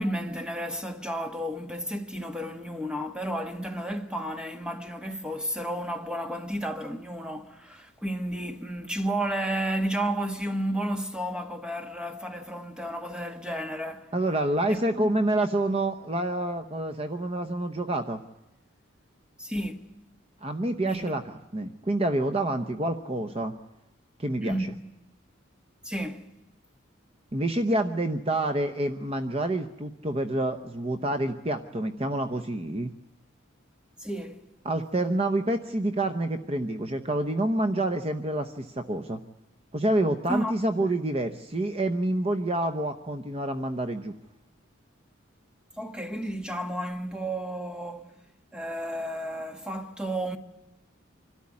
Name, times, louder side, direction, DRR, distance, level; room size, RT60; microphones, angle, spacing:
voice 1, 0.0-14.1 14.7-15.1 19.4-20.0 20.8-21.2 24.4-24.9 25.8-26.3 34.0-34.4 40.3-40.9 45.8-48.1 48.5-50.4, right 1 dB, 5° right, 1.3 m, -32 dB
voice 2, 14.1-18.2 20.4-23.5 24.2-24.7 27.3-32.9 34.6-39.2 39.7-44.1, right 1 dB, 30° right, 0.8 m, -28 dB
25.5 x 13.0 x 9.6 m
head